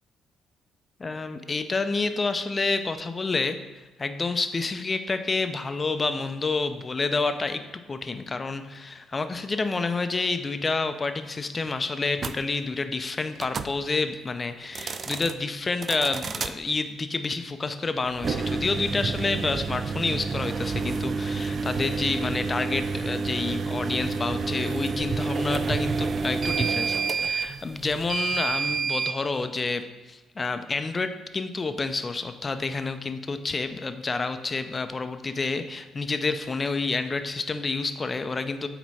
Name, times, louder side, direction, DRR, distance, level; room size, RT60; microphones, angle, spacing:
voice 1, 1.0-3.6 4.0-38.7, left 3 dB, 35° left, 9 dB, 0.5 m, -29 dB
sound 1, 12.2-12.3 13.4-13.7 14.6-15.3 15.8-16.5 18.1-29.2, right 4 dB, 50° right, 0.3 m, -29 dB
8.2 x 3.0 x 4.8 m, 1.1 s
supercardioid pair, 60°, 0 cm